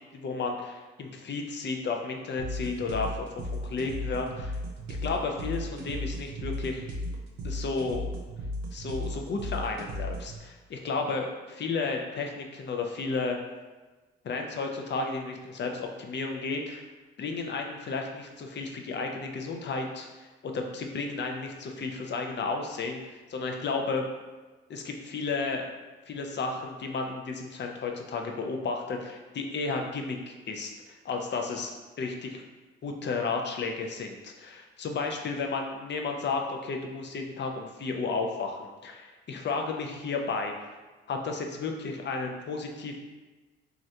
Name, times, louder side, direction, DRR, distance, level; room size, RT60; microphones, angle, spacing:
voice 1, 0.1-3.3 3.6-4.6 5.0-6.9 7.4-8.1 8.7-13.4 14.2-16.9 17.2-23.0 23.3-24.1 24.7-25.7 26.1-32.4 32.8-40.5 41.1-43.0, left 4 dB, 35° left, 3 dB, 0.5 m, -33 dB
sound 1, 2.4-10.4, left 1 dB, 65° right, 0.7 m, -35 dB
3.1 x 2.4 x 2.7 m, 1.2 s
hypercardioid pair, 50°, 30 cm